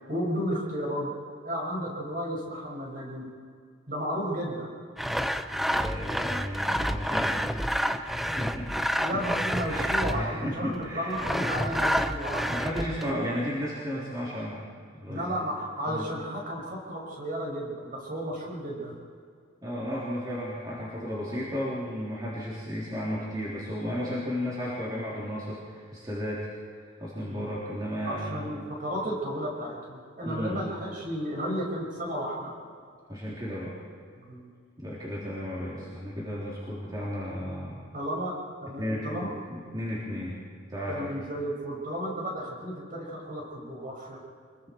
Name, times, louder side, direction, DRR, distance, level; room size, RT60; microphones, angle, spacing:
voice 1, 0.1-1.2 1.4-3.3 3.9-4.7 9.0-12.4 13.0-13.2 15.1-18.9 27.3-27.5 28.0-32.6 34.1-34.5 37.9-39.3 40.9-44.2, equal, 40° right, -2 dB, 6.0 m, -33 dB
Sawing, 5.0-10.4 11.1-13.1, equal, ahead, 0.5 m, -29 dB
voice 2, 5.5-7.3 7.8-9.2 9.6-11.1 11.4-12.1 12.4-14.6 14.9-15.4 15.9-16.0 19.6-26.5 27.0-28.5 30.2-30.6 33.1-33.7 34.8-37.8 38.8-40.4 40.7-41.2, equal, 20° right, -7 dB, 3.5 m, -34 dB
25.5 x 22.0 x 4.7 m, 2.2 s
head